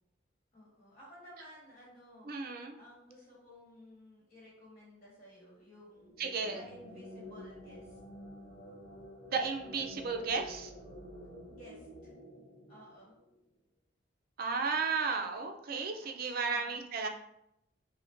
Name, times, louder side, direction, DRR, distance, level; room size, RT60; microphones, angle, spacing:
voice 1, 0.5-2.3 2.8-6.1 6.5-8.0 11.5-12.1 12.7-13.1 16.0-16.8, left 1 dB, 35° left, -6 dB, 1.4 m, -54 dB
voice 2, 2.3-2.8 6.2-6.6 9.3-10.7 14.4-17.1, right 4 dB, 50° right, 4 dB, 0.4 m, -34 dB
sound 1, 6.0-13.4, left 1 dB, 55° left, 0.8 m, -50 dB
5.3 x 2.1 x 2.5 m, 0.82 s
head